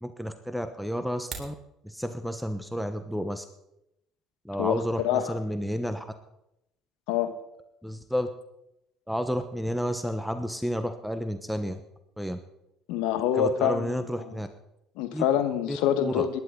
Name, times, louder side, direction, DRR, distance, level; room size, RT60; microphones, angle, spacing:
voice 1, 0.0-1.5 1.8-3.4 4.4-6.0 7.8-8.3 9.1-11.8 12.2-12.4 13.3-14.5 15.1-15.2 15.7-16.3, equal, ahead, 8 dB, 1.0 m, -31 dB
sound 1, 1.1-1.6, right 6 dB, 45° right, 3.2 m, -40 dB
voice 2, 4.6-5.3 7.1-7.3 12.9-14.3 15.0-16.4, left 9 dB, 80° left, 9 dB, 1.4 m, -26 dB
21.0 x 10.5 x 3.9 m, 0.84 s
supercardioid pair, 85°, 0 cm